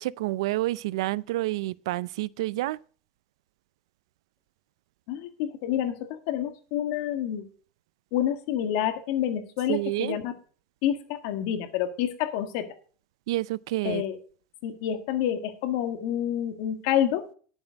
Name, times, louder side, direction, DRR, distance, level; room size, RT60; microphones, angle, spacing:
voice 1, 0.0-2.8 9.7-10.2 13.3-14.0, right 17 dB, 85° right, 0.4 m, -29 dB
voice 2, 5.1-7.5 8.1-10.3 10.8-12.7 13.8-14.2 14.6-17.2, left 10 dB, 65° left, 1.7 m, -28 dB
11.0 x 7.0 x 5.1 m
supercardioid pair, 145°, 3 cm